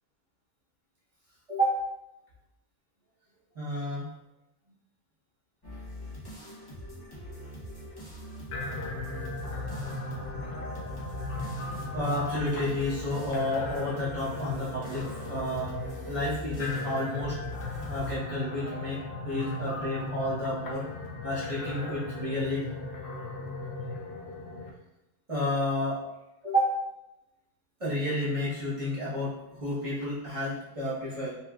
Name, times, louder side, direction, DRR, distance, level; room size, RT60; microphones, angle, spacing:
voice 1, 1.5-1.8 3.5-4.1 11.3-11.5 11.9-15.8 16.1-17.4 17.9-20.9 21.2-22.7 25.3-26.0 26.4-26.8 27.8-31.4, left 1 dB, 25° right, -9 dB, 0.9 m, -31 dB
sound 1, 5.6-18.2, equal, 30° left, 0.4 m, -42 dB
sound 2, 8.5-24.7, left 2 dB, 65° left, 0.7 m, -37 dB
4.1 x 2.4 x 2.3 m, 0.95 s
omnidirectional pair, 1.6 m